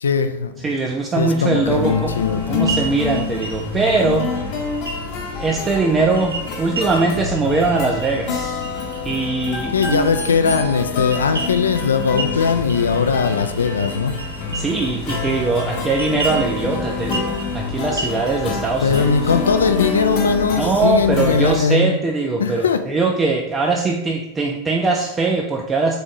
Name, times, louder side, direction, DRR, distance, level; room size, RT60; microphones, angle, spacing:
voice 1, 0.0-0.5 1.2-2.8 9.7-14.1 18.8-22.0 22.4-22.8, left 5 dB, 70° left, 9 dB, 0.3 m, -19 dB
voice 2, 0.6-2.1 2.5-4.3 5.4-8.6 9.0-10.1 14.5-19.1 20.6-26.0, right 3 dB, 20° right, 0 dB, 0.4 m, -21 dB
sound 1, 1.6-21.6, left 4 dB, 45° left, 0.9 m, -27 dB
sound 2, 2.1-20.2, right 3 dB, 75° right, 0.6 m, -34 dB
3.9 x 3.4 x 3.7 m, 0.85 s
figure-of-eight pair, 90°, 0 cm